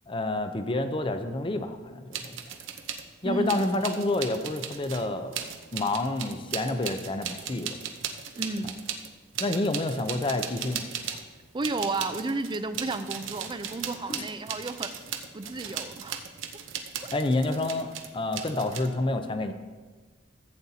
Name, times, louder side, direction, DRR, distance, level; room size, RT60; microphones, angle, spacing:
voice 1, 0.1-2.4 3.2-5.4 5.7-7.8 9.4-10.8 14.1-14.2 17.1-19.5, left 2 dB, 25° left, 8 dB, 0.6 m, -29 dB
sound 1, 2.1-3.0 3.5-11.3 11.6-18.9, right 8 dB, 85° right, 0.8 m, -37 dB
voice 2, 3.2-3.7 8.4-8.8 11.5-14.9 15.3-16.3, right 3 dB, 25° right, 11 dB, 0.4 m, -32 dB
14.5 x 8.5 x 2.8 m, 1.4 s
head